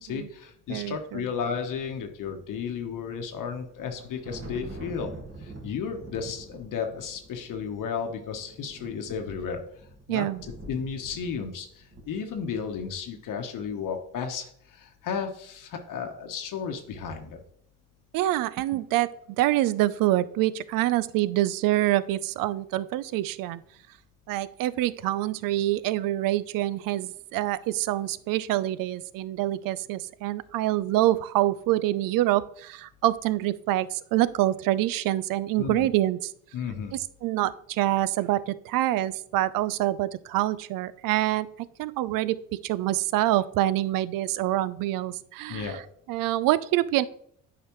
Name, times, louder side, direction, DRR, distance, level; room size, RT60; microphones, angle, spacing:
voice 1, 0.0-5.1 5.4-9.6 10.1-10.3 10.7-17.4 35.6-35.9 36.5-36.9 45.5-45.8, left 6 dB, 60° left, 4 dB, 1.0 m, -33 dB
voice 2, 0.7-1.3 10.1-10.4 18.1-23.6 24.3-36.2 36.9-41.5 41.8-45.8 46.1-47.0, right 15 dB, 65° right, 18 dB, 0.5 m, -26 dB
Thunder, 3.7-13.1, right 2 dB, 35° right, 1.8 m, -45 dB
8.5 x 5.0 x 3.0 m, 0.65 s
supercardioid pair, 70°, 36 cm